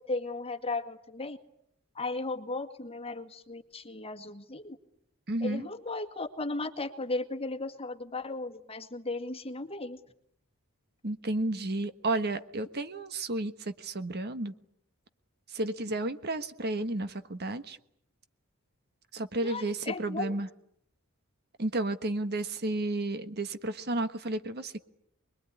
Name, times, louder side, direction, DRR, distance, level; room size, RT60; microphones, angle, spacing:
voice 1, 0.1-1.4 2.0-4.8 5.4-10.0 19.4-20.3, left 2 dB, 25° left, 6 dB, 1.9 m, -36 dB
voice 2, 5.3-5.7 11.0-14.5 15.5-17.8 19.1-20.5 21.6-24.8, right 2 dB, 45° right, 10 dB, 1.3 m, -32 dB
25.5 x 22.0 x 9.9 m, 0.72 s
head